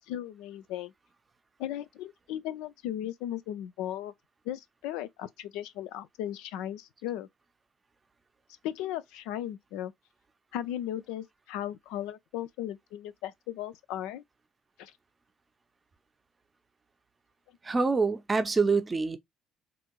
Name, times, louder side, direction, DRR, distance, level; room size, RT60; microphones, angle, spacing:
voice 1, 0.1-0.9 1.6-4.1 4.5-7.3 8.6-9.9 10.5-14.2 14.8-14.9, left 12 dB, 65° left, 0.3 m, -36 dB
voice 2, 17.6-19.2, right 4 dB, 25° right, 0.6 m, -26 dB
3.6 x 2.4 x 2.9 m
figure-of-eight pair, 55°, 0 cm